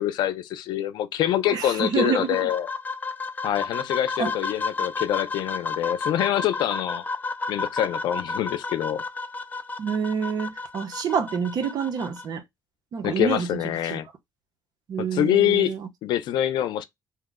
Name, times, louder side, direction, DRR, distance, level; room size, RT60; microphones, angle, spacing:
voice 1, 0.0-2.7 3.4-7.0 7.5-9.0 13.0-14.1 15.0-15.7 16.0-16.8, left 12 dB, 90° left, 0.4 m, -25 dB
sound 1, 1.3-12.2, left 4 dB, 25° left, 0.4 m, -32 dB
voice 2, 1.5-2.5 4.2-4.3 9.8-12.4 12.9-14.0 14.9-15.9, right 6 dB, 60° right, 0.7 m, -27 dB
2.7 x 2.0 x 3.5 m
cardioid pair, 115°, 7 cm